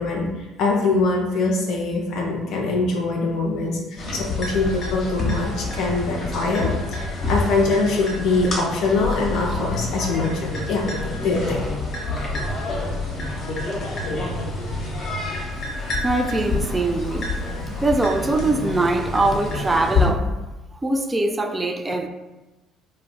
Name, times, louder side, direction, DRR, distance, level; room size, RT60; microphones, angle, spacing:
voice 1, 0.0-10.8 11.2-11.6, left 3 dB, 60° left, 0.4 m, -23 dB
sound 1, 4.0-20.1, left 3 dB, 45° left, 0.8 m, -27 dB
voice 2, 16.0-17.3 17.7-20.3 20.7-22.1, right 2 dB, 20° right, 0.3 m, -22 dB
2.3 x 2.1 x 3.7 m
figure-of-eight pair, 55°, 0 cm